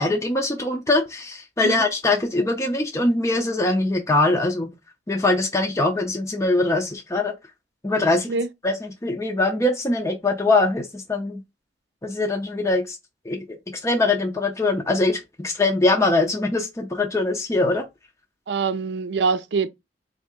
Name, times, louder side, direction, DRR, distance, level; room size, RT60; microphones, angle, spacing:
voice 1, 0.0-4.7 5.1-7.3 7.8-8.3 8.6-11.4 12.0-13.0 13.2-13.4 13.8-17.8, left 2 dB, 15° left, 0.5 m, -22 dB
voice 2, 18.5-19.7, right 4 dB, 70° right, 0.5 m, -24 dB
4.0 x 2.7 x 3.6 m
head